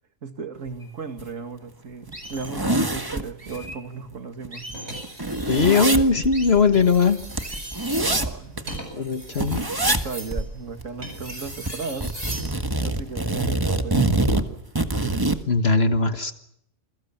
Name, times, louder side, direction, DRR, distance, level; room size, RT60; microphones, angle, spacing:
voice 1, 0.2-4.7 5.2-5.4 8.0-8.9 9.9-12.1 12.8-14.6, right 5 dB, 75° right, 7 dB, 2.5 m, -36 dB
sound 1, 0.8-0.9 1.4-1.5 2.1-2.5 3.4-3.8 4.5-5.1 6.3-6.6 7.4-7.9, equal, 35° right, 4.9 m, -40 dB
sound 2, 1.2-1.3 1.7-1.8 2.1-3.7 4.1-4.2 4.4-8.8 9.4-10.1 10.3-10.5 10.8-11.7 12.0-15.4, right 2 dB, 15° right, 1.6 m, -25 dB
sound 3, 4.7-6.0 6.6-12.5 14.0-14.2, right 1 dB, 55° right, 7.9 m, -38 dB
voice 2, 5.5-7.2 8.9-9.6 15.5-16.3, left 4 dB, 50° left, 8 dB, 1.7 m, -19 dB
28.5 x 22.0 x 7.3 m, 0.74 s
omnidirectional pair, 1.3 m